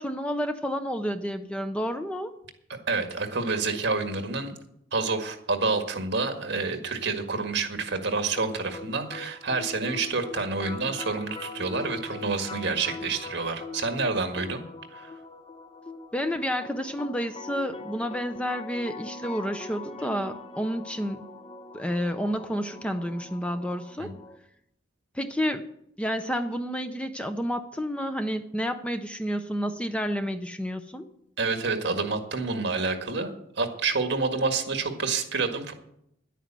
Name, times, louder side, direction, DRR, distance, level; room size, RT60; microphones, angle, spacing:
voice 1, 0.0-2.4 16.1-21.2 21.7-24.1 25.1-25.6 26.0-31.1, equal, 5° left, 8 dB, 0.6 m, -30 dB
voice 2, 2.9-4.5 4.9-14.6 14.9-15.2 24.0-24.1 31.4-35.7, right 4 dB, 60° right, 6 dB, 1.8 m, -28 dB
sound 1, 8.4-24.4, left 2 dB, 30° left, 0.9 m, -42 dB
11.0 x 9.2 x 7.5 m, 0.75 s
head